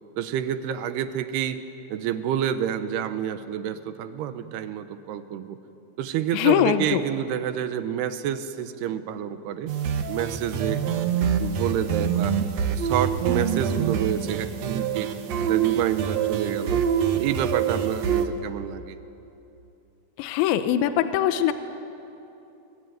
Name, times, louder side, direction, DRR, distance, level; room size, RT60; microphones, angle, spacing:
voice 1, 0.2-1.6 1.9-5.6 6.0-9.7 10.1-10.8 11.2-12.3 12.7-15.1 15.4-16.8 17.1-19.0, right 10 dB, 75° right, 11 dB, 2.7 m, -28 dB
voice 2, 6.3-7.0 20.2-21.5, left 11 dB, 80° left, 10 dB, 3.2 m, -22 dB
sound 1, 9.7-18.3, right 8 dB, 90° right, 1.5 m, -25 dB
28.5 x 22.5 x 9.3 m, 2.8 s
omnidirectional pair, 5.3 m